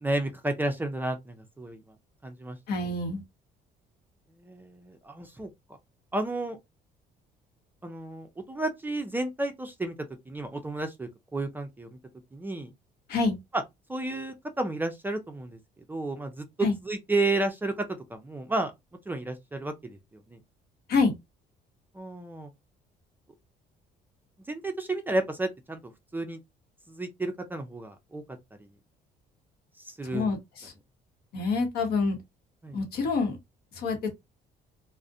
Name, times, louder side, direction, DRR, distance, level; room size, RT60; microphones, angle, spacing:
voice 1, 0.0-1.8 2.2-2.9 4.4-5.5 6.1-6.6 7.8-9.9 10.3-11.9 12.3-12.7 13.9-15.6 15.9-18.7 19.1-20.0 20.3-20.4 21.9-22.5 24.5-25.8 26.1-26.4 26.9-28.2 29.8-30.3 32.6-32.8, right 2 dB, 10° right, 0.4 m, -32 dB
voice 2, 2.7-3.2 13.1-13.4 16.6-16.8 20.9-21.1 30.1-30.7 31.3-32.2 32.7-33.4 33.7-34.1, left 4 dB, 65° left, 0.9 m, -27 dB
2.4 x 2.0 x 2.5 m
cardioid pair, 110°, 17 cm